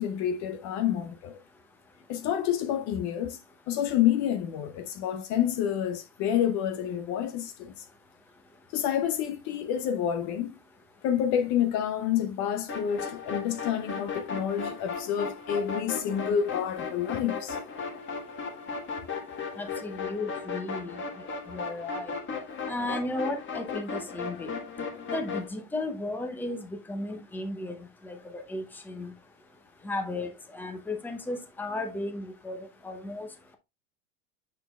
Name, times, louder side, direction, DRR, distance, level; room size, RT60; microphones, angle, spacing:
voice 1, 0.0-1.4 2.1-3.4 3.7-7.8 8.7-10.6 11.0-17.6, left 9 dB, 40° left, 0.7 m, -28 dB
sound 1, 12.7-25.5, left 5 dB, 25° left, 1.5 m, -36 dB
voice 2, 19.6-21.0 21.5-22.1 22.7-24.5 25.1-29.1 29.8-32.6 32.8-33.3, left 2 dB, 5° left, 0.8 m, -35 dB
6.6 x 6.2 x 2.3 m
supercardioid pair, 130°, 44 cm